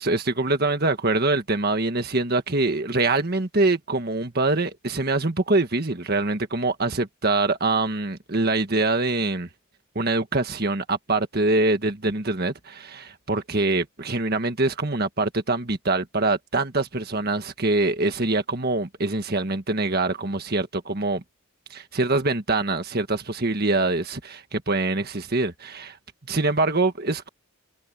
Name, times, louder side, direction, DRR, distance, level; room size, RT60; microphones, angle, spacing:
voice 1, 0.0-9.5 9.9-21.2 21.7-26.0 26.3-27.3, right 2 dB, 45° right, 1.6 m, -24 dB
head